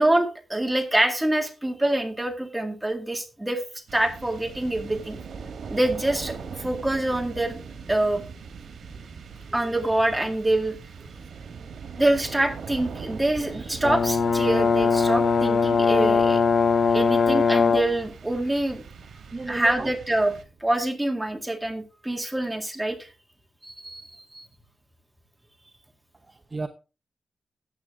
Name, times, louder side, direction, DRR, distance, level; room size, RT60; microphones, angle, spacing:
voice 1, 0.0-3.6 3.9-5.2 5.7-7.6 7.9-8.2 9.5-10.8 12.0-16.4 16.9-18.8 19.5-20.3 20.6-23.1 23.6-24.5, right 1 dB, 10° right, 4 dB, 2.1 m, -25 dB
sound 1, 3.9-20.8, right 5 dB, 85° right, 1.6 m, -41 dB
Brass instrument, 13.8-18.0, left 5 dB, 50° left, 0.7 m, -21 dB
voice 2, 19.3-19.9 26.2-26.7, right 3 dB, 25° right, 7 dB, 0.8 m, -34 dB
14.0 x 8.7 x 3.6 m, 0.32 s
wide cardioid pair, 145°, 0 cm